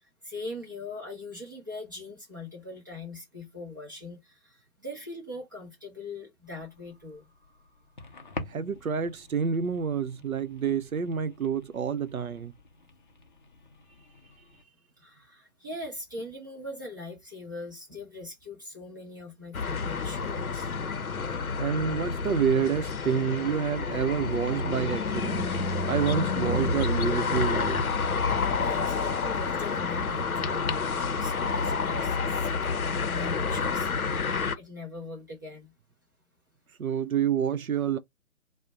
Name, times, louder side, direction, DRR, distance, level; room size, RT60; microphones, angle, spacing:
voice 1, 0.0-7.3 15.0-20.7 28.2-32.8 33.0-33.9 34.5-35.7, left 2 dB, 15° right, 0.5 m, -41 dB
sound 1, 6.4-14.6, left 2 dB, 35° left, 0.5 m, -47 dB
voice 2, 8.5-12.5 21.6-25.5 25.9-27.8 36.8-38.0, right 7 dB, 80° right, 0.6 m, -28 dB
sound 2, 19.5-34.6, left 4 dB, 85° left, 0.6 m, -29 dB
2.5 x 2.0 x 3.8 m
figure-of-eight pair, 140°, 42 cm